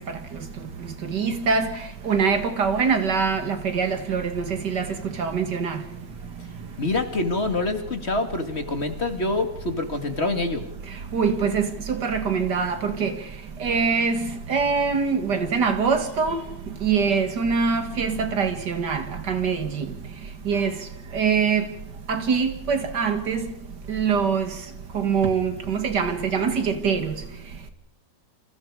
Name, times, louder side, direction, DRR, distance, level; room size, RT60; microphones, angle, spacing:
voice 1, 1.0-1.7 2.0-4.9 5.2-5.8 11.1-13.2 13.6-16.4 16.8-19.9 20.5-20.7 21.1-21.7 22.1-23.5 23.9-24.5 24.9-27.1, right 5 dB, 75° right, 2.5 m, -23 dB
voice 2, 6.8-10.6, left 2 dB, 40° left, 2.4 m, -26 dB
29.0 x 26.5 x 4.9 m
omnidirectional pair, 1.8 m